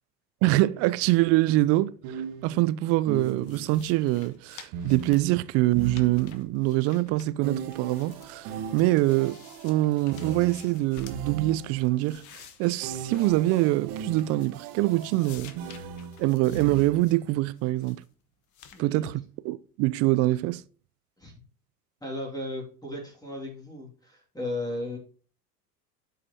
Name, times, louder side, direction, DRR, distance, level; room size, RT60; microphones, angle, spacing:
voice 1, 0.4-15.6 16.2-18.0 18.8-20.6, right 17 dB, 35° right, 0.4 m, -25 dB
sound 1, 1.0-1.2 2.0-3.8 4.7-6.6 7.4-11.9 12.8-17.3, right 7 dB, 50° right, 1.2 m, -38 dB
sound 2, 3.2-7.5 7.7-11.3 11.7-14.7 14.9-17.2 17.6-18.1 18.5-18.8, left 7 dB, 40° left, 1.3 m, -51 dB
voice 2, 18.7-19.1 21.2-21.3 22.0-25.0, left 1 dB, 10° left, 2.4 m, -35 dB
12.5 x 4.9 x 2.8 m
figure-of-eight pair, 80°, 48 cm